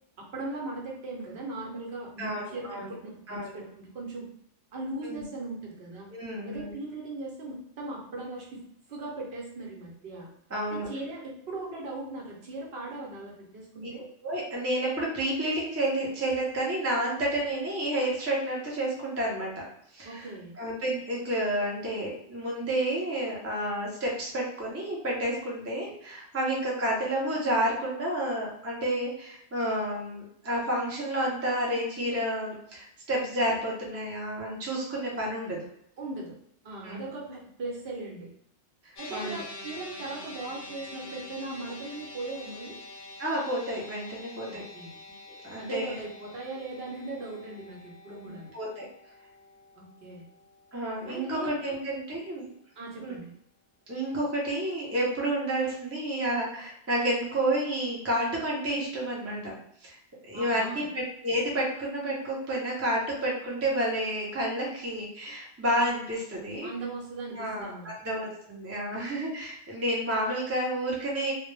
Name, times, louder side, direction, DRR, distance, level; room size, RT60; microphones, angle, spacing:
voice 1, 0.2-4.3 4.7-6.1 6.4-8.6 8.9-10.3 10.7-14.0 20.0-20.5 36.0-36.4 36.6-38.3 39.0-42.8 44.5-45.0 45.6-48.5 49.7-50.2 51.1-51.6 52.8-53.3 60.3-60.8 66.6-67.9, right 2 dB, 60° right, -3 dB, 0.8 m, -39 dB
voice 2, 2.2-2.9 3.3-3.6 5.0-5.2 6.1-6.7 10.5-10.9 14.2-19.5 19.9-20.2 20.6-35.6 36.8-37.0 38.8-39.4 43.2-44.6 45.3-46.0 48.1-48.9 50.7-52.5 53.0-53.2 53.9-59.5 59.8-60.0 60.3-66.7 67.3-67.7 68.0-71.3, right 1 dB, 25° right, -4 dB, 0.3 m, -30 dB
sound 1, 39.0-51.4, left 2 dB, 55° left, 0.7 m, -46 dB
2.2 x 2.0 x 3.0 m, 0.73 s
omnidirectional pair, 1.3 m